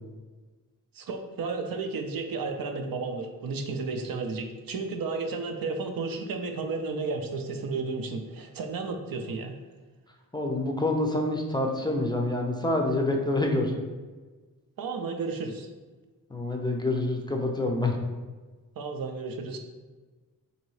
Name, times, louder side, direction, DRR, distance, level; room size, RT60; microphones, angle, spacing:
voice 1, 0.9-9.5 14.8-15.7 18.8-19.6, right 4 dB, 75° right, 5 dB, 0.5 m, -33 dB
voice 2, 10.3-13.7 16.3-18.0, left 2 dB, 15° left, 1 dB, 0.4 m, -27 dB
3.9 x 2.7 x 3.1 m, 1.3 s
wide cardioid pair, 95°, 35 cm